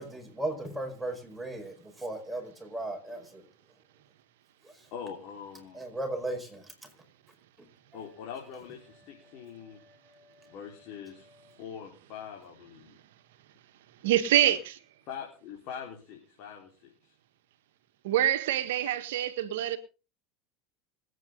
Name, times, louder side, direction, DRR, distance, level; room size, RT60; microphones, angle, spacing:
voice 1, 0.0-3.4 4.6-4.7 5.7-6.7 9.9-10.6, right 2 dB, 5° right, 5.1 m, -37 dB
voice 2, 4.9-5.8 7.9-9.8 10.5-11.3 11.6-13.0 14.4-14.6 15.1-17.1, left 7 dB, 60° left, 4.5 m, -43 dB
voice 3, 14.0-14.8 18.0-19.8, right 12 dB, 75° right, 1.5 m, -25 dB
25.5 x 9.1 x 3.9 m
hypercardioid pair, 90°, 0 cm